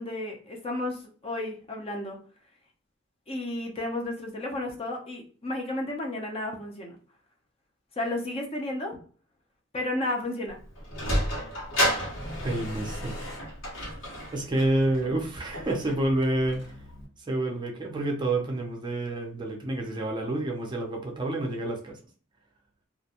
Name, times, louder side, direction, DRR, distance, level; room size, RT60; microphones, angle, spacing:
voice 1, 0.0-2.2 3.3-7.0 8.0-9.0 9.7-10.6, left 1 dB, 30° left, 1 dB, 0.5 m, -32 dB
Sliding door, 10.5-17.0, equal, 70° left, 1.1 m, -32 dB
voice 2, 12.4-13.3 14.3-16.8 17.3-22.0, right 1 dB, 20° right, 0 dB, 0.4 m, -28 dB
2.4 x 2.1 x 2.7 m, 0.41 s
head